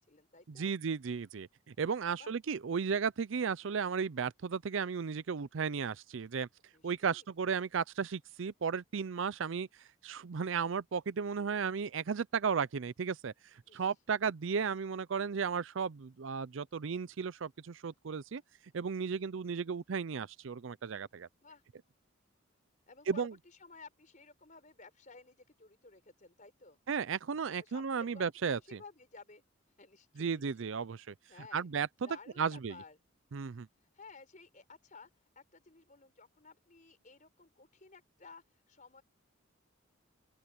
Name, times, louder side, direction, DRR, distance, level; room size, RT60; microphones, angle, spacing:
voice 1, 0.0-0.7 2.2-2.3 6.7-7.3 13.7-13.9 19.1-19.3 21.3-21.6 22.9-26.8 27.6-29.4 29.8-30.7 31.2-31.7 32.0-33.0 33.9-35.1 35.3-39.0, left 4 dB, 40° left, 4.8 m, -55 dB
voice 2, 0.6-6.5 6.8-9.7 10.0-13.3 13.7-18.4 18.7-21.3 23.1-23.3 26.9-28.8 30.2-31.1 31.5-32.1 32.4-32.7 33.3-33.7, right 6 dB, 65° right, 0.5 m, -34 dB
open air
head